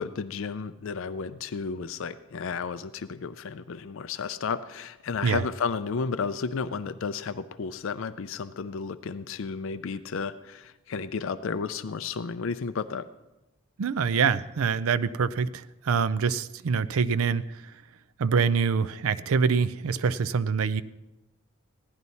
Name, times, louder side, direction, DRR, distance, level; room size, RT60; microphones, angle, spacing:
voice 1, 0.0-13.1, left 5 dB, 60° left, 13 dB, 0.4 m, -32 dB
voice 2, 13.8-17.7 18.2-20.8, right 5 dB, 70° right, 14 dB, 0.4 m, -25 dB
15.5 x 11.0 x 4.1 m, 1.0 s
head